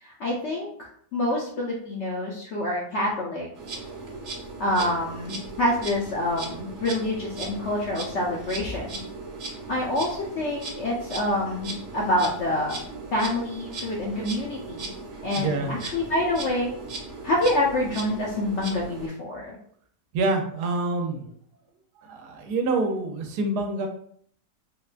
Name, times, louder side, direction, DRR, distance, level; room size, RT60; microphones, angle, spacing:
voice 1, 0.0-3.5 4.6-9.0 9.7-12.8 13.1-14.9 15.2-16.7 17.2-19.6, left 1 dB, 65° left, -3 dB, 0.7 m, -27 dB
Insect, 3.5-19.1, right 3 dB, 60° right, 1.1 m, -37 dB
voice 2, 15.4-15.7 20.1-21.2 22.1-23.9, right 3 dB, 85° right, 4 dB, 1.1 m, -26 dB
3.7 x 2.2 x 2.4 m, 0.62 s
omnidirectional pair, 1.7 m